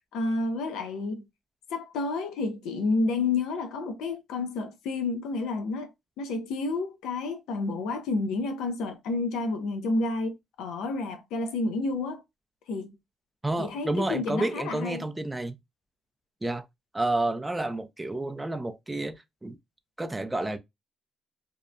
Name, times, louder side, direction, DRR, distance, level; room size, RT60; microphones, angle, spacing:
voice 1, 0.1-1.2 1.7-5.9 6.2-12.2 12.7-12.9 13.6-15.0, left 3 dB, 90° left, 0.5 m, -30 dB
voice 2, 13.4-15.6 16.4-16.6 16.9-19.6 20.0-20.6, right 2 dB, 15° right, 0.4 m, -30 dB
2.7 x 2.1 x 2.4 m
cardioid pair, 90°, 0 cm